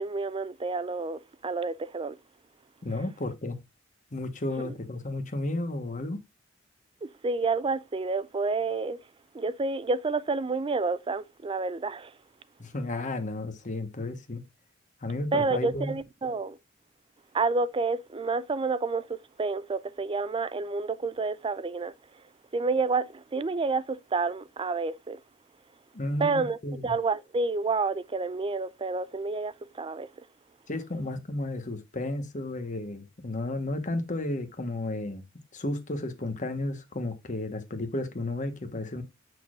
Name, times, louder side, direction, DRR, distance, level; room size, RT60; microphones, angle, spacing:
voice 1, 0.0-2.2 4.6-4.7 7.0-9.0 9.3-12.2 15.3-16.6 17.3-22.2 22.5-25.2 26.2-30.1, right 4 dB, 25° right, 0.4 m, -29 dB
voice 2, 2.8-3.6 4.1-6.2 12.6-14.4 15.0-15.9 25.9-26.9 30.7-35.2 35.5-39.0, left 2 dB, 40° left, 1.2 m, -33 dB
6.8 x 6.3 x 2.4 m
head